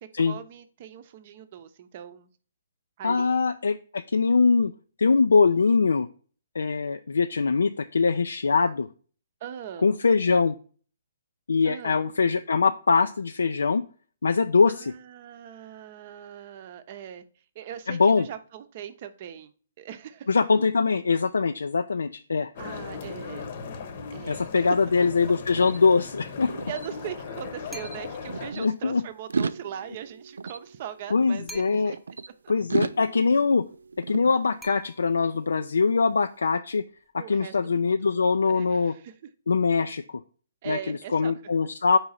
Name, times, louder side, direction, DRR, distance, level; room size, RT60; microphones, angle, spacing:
voice 1, 0.0-2.3 3.0-3.4 9.4-9.9 11.6-12.0 14.7-17.3 17.5-19.5 19.8-20.3 22.6-23.5 24.1-24.9 26.6-32.0 32.4-32.5 37.2-38.1 38.4-39.3 40.6-41.4, right 9 dB, 40° right, 11 dB, 0.6 m, -40 dB
voice 2, 3.0-3.8 4.1-4.7 5.0-6.1 6.5-8.9 9.8-10.6 11.5-13.8 14.2-14.9 17.9-18.3 20.3-22.5 24.3-26.5 28.6-29.0 31.1-31.9 32.5-33.6 34.1-36.8 37.3-38.9 39.5-40.0 40.7-42.0, left 4 dB, 90° left, 9 dB, 0.4 m, -22 dB
sound 1, 22.6-28.5, left 5 dB, 45° left, 0.9 m, -38 dB
sound 2, 24.7-27.5 27.8-28.7 29.2-32.3 32.7-35.0, right 4 dB, 85° right, 0.3 m, -35 dB
sound 3, 27.7-28.3 31.5-32.2 34.6-35.4, left 1 dB, ahead, 0.4 m, -46 dB
4.8 x 4.0 x 5.6 m, 0.41 s
hypercardioid pair, 155°, 0 cm